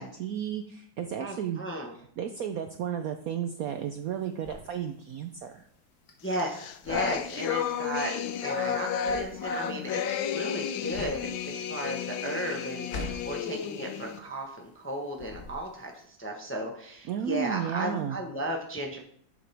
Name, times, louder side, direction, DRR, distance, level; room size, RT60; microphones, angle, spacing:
voice 1, 0.0-1.6 2.0-5.7 17.1-18.2, right 9 dB, 70° right, 7 dB, 0.8 m, -33 dB
voice 2, 1.2-1.9 6.2-8.1 8.4-19.0, right 1 dB, 10° left, 1 dB, 0.6 m, -35 dB
sound 1, 3.7-14.9 15.1-16.0, left 2 dB, 50° left, 1.5 m, -44 dB
sound 2, 6.3-14.2, left 8 dB, 85° left, 1.4 m, -32 dB
10.0 x 7.2 x 3.4 m, 0.64 s
omnidirectional pair, 2.1 m